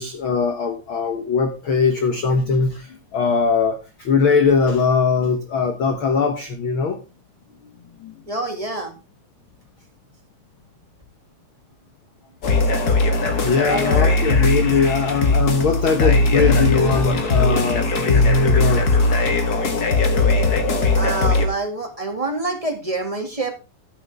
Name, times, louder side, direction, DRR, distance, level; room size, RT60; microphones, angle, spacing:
voice 1, 0.0-7.0 8.0-8.1 13.4-18.9, left 5 dB, 60° left, 1.3 m, -20 dB
voice 2, 8.3-8.9 13.6-14.2 20.9-23.5, right 2 dB, 20° right, 1.0 m, -26 dB
sound 1, 12.4-21.5, left 3 dB, 40° left, 1.5 m, -19 dB
13.0 x 8.3 x 3.4 m
omnidirectional pair, 3.8 m